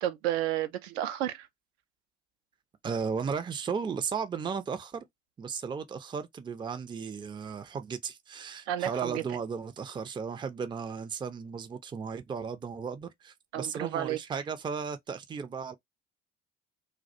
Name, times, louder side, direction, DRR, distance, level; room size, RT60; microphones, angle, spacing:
voice 1, 0.0-1.5 8.7-9.2 13.5-14.2, right 12 dB, 70° right, 0.5 m, -31 dB
voice 2, 2.8-5.1 5.4-15.8, right 6 dB, 15° right, 0.4 m, -35 dB
2.3 x 2.1 x 2.6 m
figure-of-eight pair, 60°, 33 cm